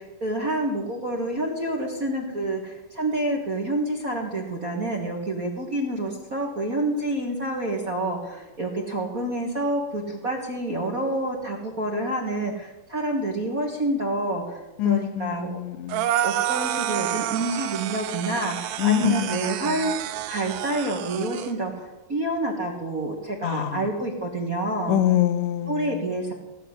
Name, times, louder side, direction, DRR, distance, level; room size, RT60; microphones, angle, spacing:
voice 1, 0.0-15.6 16.2-20.0 20.3-25.0 25.7-26.3, right 1 dB, 40° right, 0 dB, 1.4 m, -28 dB
voice 2, 14.8-16.1 18.8-19.9 23.4-23.9 24.9-26.1, left 13 dB, 85° left, 11 dB, 2.4 m, -25 dB
sound 1, 15.9-21.5, right 12 dB, 80° right, 2.2 m, -29 dB
17.5 x 6.8 x 9.7 m, 1.1 s
omnidirectional pair, 3.8 m